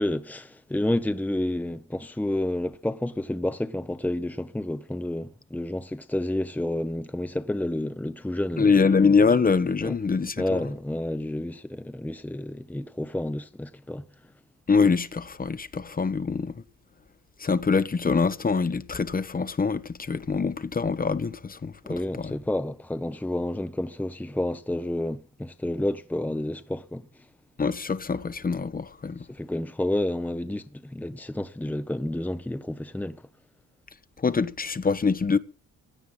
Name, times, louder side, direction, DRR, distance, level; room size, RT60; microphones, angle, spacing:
voice 1, 0.0-8.7 9.8-10.0 10.4-14.0 21.8-27.0 29.3-33.2, left 1 dB, 5° left, 1.0 m, -30 dB
voice 2, 8.6-10.7 14.7-16.6 17.4-22.4 27.6-29.2 34.2-35.4, left 5 dB, 30° left, 1.3 m, -24 dB
17.0 x 10.5 x 7.6 m
cardioid pair, 90°, 30 cm